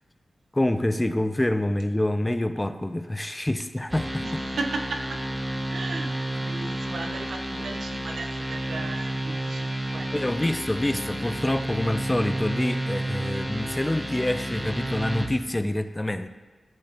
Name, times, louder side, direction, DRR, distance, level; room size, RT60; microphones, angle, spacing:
voice 1, 0.5-4.2 10.1-16.3, left 1 dB, 15° left, 11 dB, 0.3 m, -26 dB
sound 1, 3.9-15.3, right 1 dB, 20° right, 0.8 m, -31 dB
voice 2, 4.2-5.2 5.7-10.1, right 3 dB, 85° right, 4 dB, 0.6 m, -36 dB
11.5 x 3.9 x 2.9 m, 1.3 s
cardioid pair, 65°, 0 cm